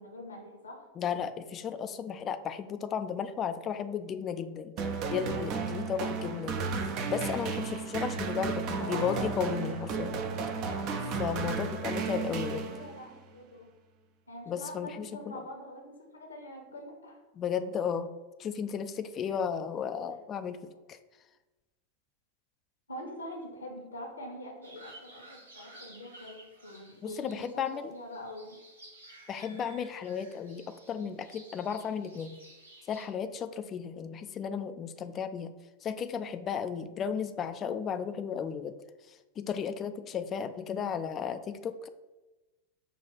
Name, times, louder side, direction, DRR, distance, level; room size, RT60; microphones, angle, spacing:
voice 1, 0.0-0.8 8.8-9.2 12.7-13.7 14.3-17.2 22.9-28.6, left 1 dB, 75° left, 2 dB, 0.9 m, -44 dB
voice 2, 1.0-4.7 5.1-10.2 11.2-12.7 14.5-15.1 15.3-15.4 17.4-18.1 18.4-20.6 20.9-21.0 27.0-27.9 29.3-32.4 32.9-35.5 35.8-38.8 39.1-41.9, left 7 dB, 30° left, 10 dB, 0.3 m, -34 dB
sound 1, 4.8-13.1, right 5 dB, 40° right, 0.5 m, -33 dB
sound 2, 24.6-33.1, right 1 dB, 75° right, 1.1 m, -54 dB
5.5 x 2.4 x 3.9 m, 1.1 s
figure-of-eight pair, 90°, 0 cm